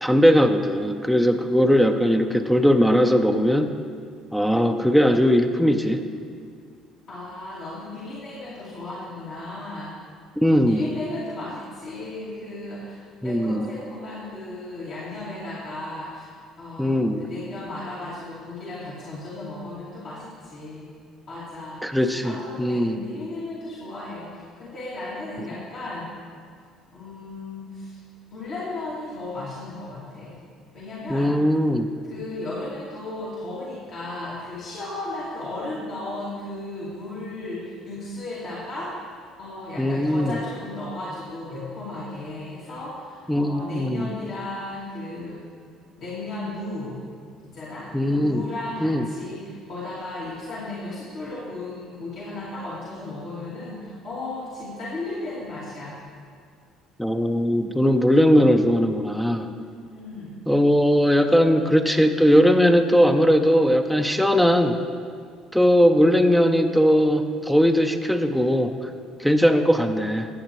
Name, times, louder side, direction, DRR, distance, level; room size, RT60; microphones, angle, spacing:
voice 1, 0.0-3.7 4.3-6.0 10.4-10.9 13.2-13.7 16.8-17.3 21.8-22.3 22.6-23.0 31.1-31.9 39.8-40.3 43.3-44.1 47.9-48.4 48.8-49.0 57.0-59.6 60.5-64.7 65.5-68.7 69.2-70.3, equal, ahead, 5 dB, 0.6 m, -19 dB
voice 2, 7.1-10.0 10.7-16.3 16.6-20.9 21.3-26.1 26.9-28.0 28.3-30.4 30.7-31.4 32.1-45.4 46.0-47.0 47.5-56.0 59.9-60.4, left 2 dB, 60° left, -9 dB, 2.5 m, -35 dB
14.5 x 9.0 x 3.1 m, 2.1 s
hypercardioid pair, 60°, 0 cm